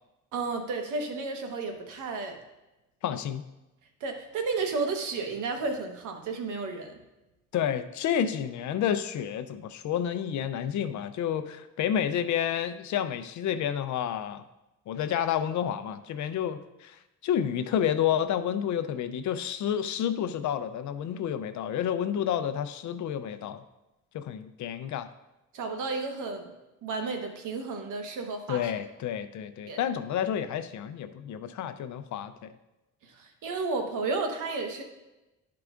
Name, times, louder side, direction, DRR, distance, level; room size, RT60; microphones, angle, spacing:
voice 1, 0.3-2.4 4.0-7.0 25.5-26.5 26.8-28.7 29.7-29.8 33.1-34.8, right 3 dB, 85° right, 4 dB, 1.2 m, -32 dB
voice 2, 3.0-3.4 7.5-14.4 14.9-17.0 17.2-23.6 24.1-25.1 28.5-32.5, left 9 dB, 70° left, 10 dB, 0.6 m, -30 dB
12.0 x 4.8 x 2.5 m, 1.0 s
cardioid pair, 90°, 30 cm